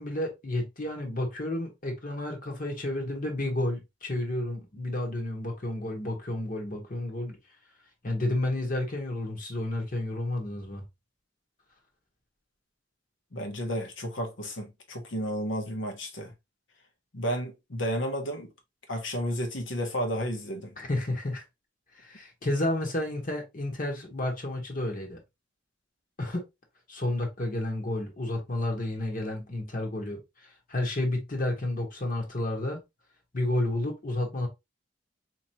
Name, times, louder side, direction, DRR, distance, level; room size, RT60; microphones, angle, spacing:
voice 1, 0.0-7.4 8.0-10.8 20.8-21.4 21.9-25.2 26.2-26.4 26.9-32.8 33.3-34.5, left 1 dB, 45° left, 1.3 m, -31 dB
voice 2, 13.3-16.3 17.1-18.5 18.9-20.7, equal, 80° left, 1.1 m, -32 dB
4.2 x 3.0 x 2.8 m
head